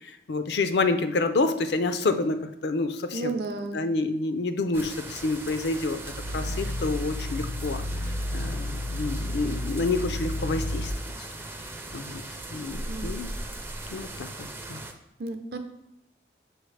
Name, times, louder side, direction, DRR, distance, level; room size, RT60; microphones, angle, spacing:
voice 1, 0.0-3.3 3.7-6.0 6.3-7.8 8.3-10.9 11.9-12.2 12.5-13.3 13.9-14.8, left 3 dB, 70° left, 9 dB, 0.4 m, -28 dB
voice 2, 3.1-3.9 12.9-13.3 15.2-15.6, right 3 dB, 60° right, 6 dB, 0.6 m, -33 dB
sound 1, 4.7-14.9, right 2 dB, 15° right, 0.4 m, -39 dB
Growling, 6.0-11.0, left 1 dB, 90° left, 1.5 m, -32 dB
6.3 x 4.7 x 3.3 m, 0.81 s
head